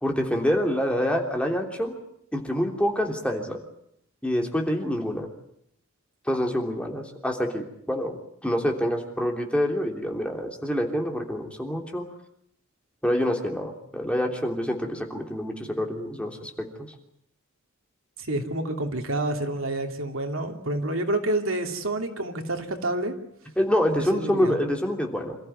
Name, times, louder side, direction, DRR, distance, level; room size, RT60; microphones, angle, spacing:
voice 1, 0.0-2.0 2.3-3.6 4.2-5.3 6.3-8.2 8.4-12.0 13.0-16.7 23.6-25.4, equal, 5° left, 2 dB, 3.2 m, -26 dB
voice 2, 18.2-23.1 24.0-24.6, right 1 dB, 80° right, 4 dB, 2.8 m, -28 dB
27.5 x 14.5 x 9.5 m, 0.73 s
head